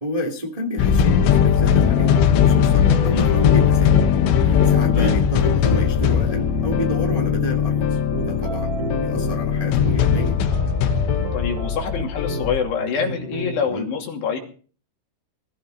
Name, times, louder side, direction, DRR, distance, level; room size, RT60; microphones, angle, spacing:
voice 1, 0.0-4.0 4.4-8.7 9.0-10.4 13.7-13.9, equal, 25° right, 1 dB, 0.7 m, -30 dB
sound 1, 0.8-12.6, left 8 dB, 90° left, 3.9 m, -19 dB
sound 2, 1.8-13.7, right 3 dB, 65° right, 3.8 m, -33 dB
voice 2, 11.3-14.4, left 6 dB, 65° left, 1 dB, 4.7 m, -26 dB
19.5 x 15.0 x 4.0 m, 0.41 s
omnidirectional pair, 5.5 m